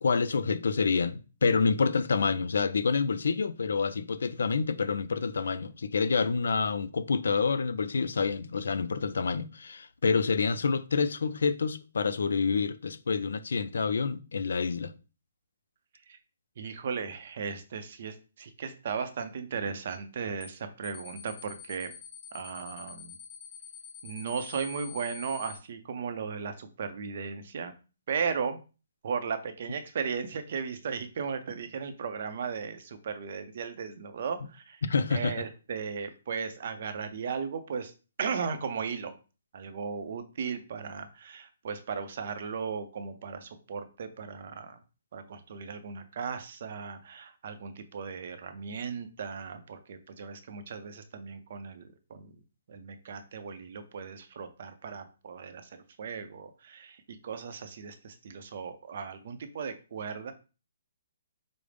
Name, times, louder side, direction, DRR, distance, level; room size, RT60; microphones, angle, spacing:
voice 1, 0.0-14.9 34.8-35.4, left 5 dB, 75° left, 0.4 m, -28 dB
voice 2, 16.6-21.9 22.3-23.1 24.0-27.7 28.1-28.6 29.0-34.8 35.1-37.9 38.2-39.1 39.5-44.8 45.1-52.3 52.7-55.7 56.0-60.3, right 6 dB, 45° right, 0.5 m, -36 dB
sound 1, 20.4-20.6 20.8-25.6, left 8 dB, 30° left, 0.6 m, -46 dB
4.9 x 2.0 x 3.2 m
hypercardioid pair, 170°, 0 cm